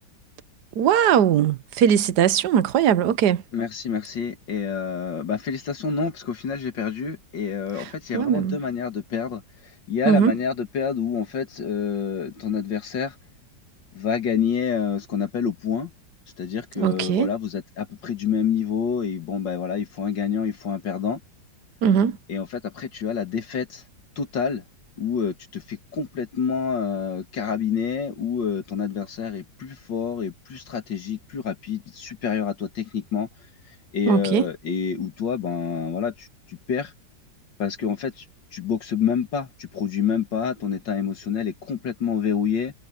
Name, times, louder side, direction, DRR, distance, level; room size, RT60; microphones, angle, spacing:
voice 1, 0.8-3.4 8.1-8.6 10.0-10.3 16.8-17.3 21.8-22.2 34.1-34.4, right 8 dB, 65° right, 1.5 m, -20 dB
voice 2, 3.5-13.2 13.9-15.9 16.4-21.2 22.3-23.8 24.2-24.6 25.0-33.3 33.9-36.9 37.6-38.2 38.5-42.7, left 7 dB, 80° left, 2.6 m, -27 dB
omnidirectional pair, 1.9 m